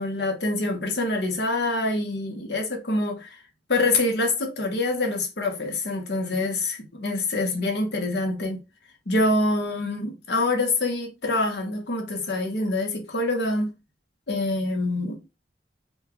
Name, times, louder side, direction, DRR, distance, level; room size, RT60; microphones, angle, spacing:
voice 1, 0.0-3.4 3.7-8.6 9.1-13.7 14.3-15.3, left 2 dB, 70° left, 1.1 m, -25 dB
4.4 x 2.3 x 2.9 m
head